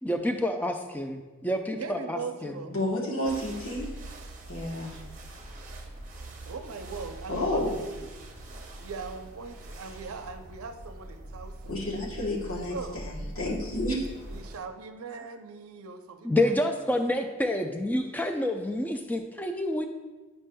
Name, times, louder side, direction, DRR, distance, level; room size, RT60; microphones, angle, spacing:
voice 1, 0.0-2.5 16.2-19.9, left 1 dB, 10° left, 5 dB, 0.3 m, -28 dB
voice 2, 1.8-2.7 6.4-8.1 8.8-11.8 12.7-13.0 14.3-16.5, right 4 dB, 80° right, 7 dB, 0.5 m, -40 dB
voice 3, 2.7-3.9 4.5-5.0 7.3-7.7 11.7-14.1, left 1 dB, 75° left, -5 dB, 1.2 m, -30 dB
sound 1, 3.2-14.6, right 1 dB, 35° right, 0.7 m, -42 dB
9.9 x 5.3 x 2.2 m, 1.3 s
head